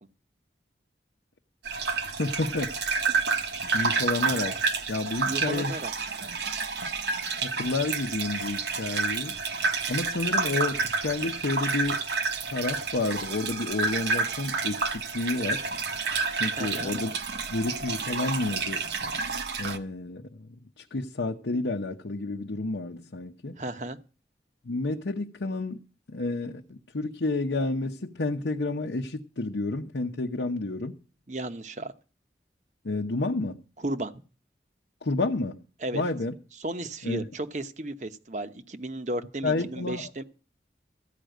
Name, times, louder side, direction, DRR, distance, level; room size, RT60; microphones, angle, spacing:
sound 1, 1.6-19.8, right 4 dB, 75° right, 1.1 m, -29 dB
voice 1, 2.2-2.7 3.7-4.5 4.9-5.7 7.4-9.4 9.9-12.0 12.5-15.6 16.4-17.1 17.5-18.8 19.6-23.6 24.6-25.8 26.1-30.9 32.8-33.6 35.0-35.6 35.9-36.3 37.0-37.3 39.4-40.1, left 2 dB, 90° left, 0.8 m, -30 dB
voice 2, 5.2-5.9 16.5-16.9 23.6-24.0 31.3-31.9 33.8-34.1 35.8-36.0 36.6-40.2, right 1 dB, 40° right, 0.8 m, -34 dB
14.5 x 5.0 x 9.2 m
head